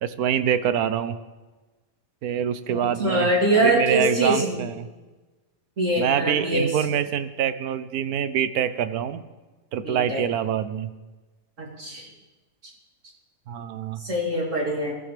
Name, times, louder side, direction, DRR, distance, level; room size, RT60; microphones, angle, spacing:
voice 1, 0.0-1.2 2.2-3.3 3.5-4.9 6.0-9.2 9.7-10.9 13.5-14.0, right 9 dB, 80° right, 12 dB, 1.2 m, -25 dB
voice 2, 2.7-4.6 5.8-6.7 9.8-10.2 11.6-12.1 14.0-14.9, right 1 dB, 55° right, -3 dB, 3.4 m, -23 dB
24.0 x 14.0 x 3.4 m, 1.2 s
omnidirectional pair, 1.5 m